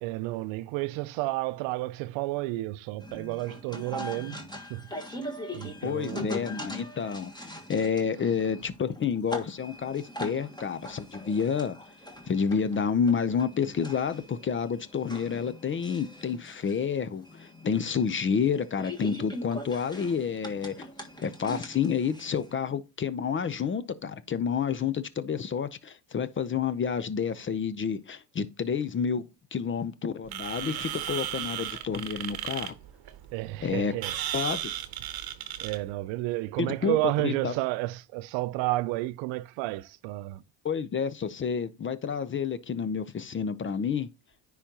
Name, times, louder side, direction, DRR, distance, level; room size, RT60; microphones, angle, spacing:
voice 1, 0.0-4.4 4.7-4.9 5.5-6.4 33.3-34.2 35.6-40.4, right 19 dB, 65° right, 0.6 m, -31 dB
sound 1, 3.0-22.5, left 1 dB, 10° left, 1.4 m, -42 dB
voice 2, 5.8-11.8 12.3-20.9 21.2-32.7 33.6-33.9 34.3-34.7 36.6-37.0 37.2-37.5 40.6-44.1, left 6 dB, 25° left, 0.5 m, -29 dB
sound 2, 30.3-35.9, right 11 dB, 50° right, 1.0 m, -35 dB
9.8 x 3.9 x 2.8 m
supercardioid pair, 80°, 49 cm